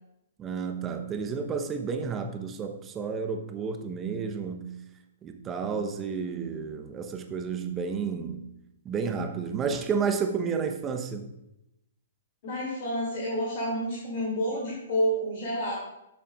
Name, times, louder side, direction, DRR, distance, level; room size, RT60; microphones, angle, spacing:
voice 1, 0.4-4.7 5.2-8.4 8.8-11.3, right 5 dB, 20° right, 5 dB, 0.9 m, -31 dB
voice 2, 12.4-15.7, equal, 50° left, -5 dB, 2.8 m, -29 dB
12.5 x 7.0 x 2.5 m, 0.87 s
figure-of-eight pair, 115°, 0 cm